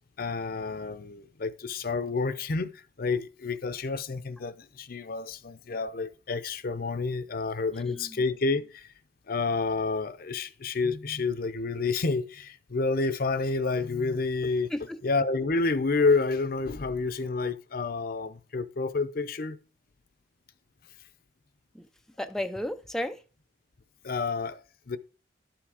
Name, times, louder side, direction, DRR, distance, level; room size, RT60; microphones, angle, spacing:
voice 1, 0.2-8.9 9.3-14.7 15.0-19.6 24.0-25.0, left 3 dB, 55° left, 0.6 m, -29 dB
voice 2, 7.8-8.2 14.7-15.0 21.7-21.9 22.2-23.2, left 1 dB, 5° left, 0.4 m, -34 dB
11.5 x 6.0 x 4.9 m
head